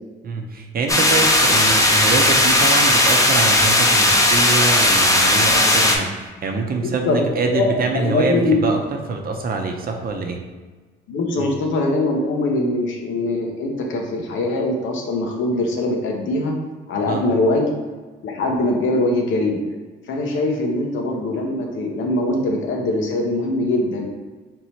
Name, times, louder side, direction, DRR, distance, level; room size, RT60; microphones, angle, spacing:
voice 1, 0.2-8.8 9.1-10.4 11.4-11.5 17.0-17.2, right 4 dB, 50° right, 3 dB, 0.7 m, -25 dB
sound 1, 0.9-6.0, left 1 dB, 15° left, 0.7 m, -16 dB
voice 2, 6.8-7.2 7.5-8.6 11.1-16.6 16.9-17.7 18.2-19.6 20.1-24.1, left 2 dB, 80° left, 1 dB, 0.9 m, -22 dB
3.6 x 3.0 x 4.3 m, 1.3 s
cardioid pair, 90°, 20 cm